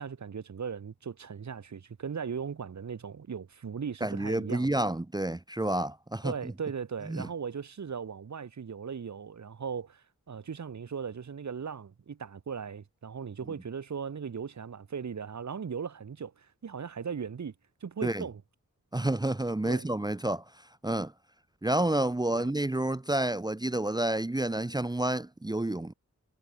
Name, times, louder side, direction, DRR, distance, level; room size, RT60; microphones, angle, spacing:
voice 1, 0.0-4.8 6.2-17.5 17.8-18.4 19.7-19.9 22.3-22.5, right 6 dB, 65° right, 1.9 m, -38 dB
voice 2, 4.0-6.3 7.1-7.3 18.0-18.2 18.9-21.1 21.6-25.9, right 1 dB, 15° right, 1.0 m, -29 dB
wide cardioid pair, 120°, 31 cm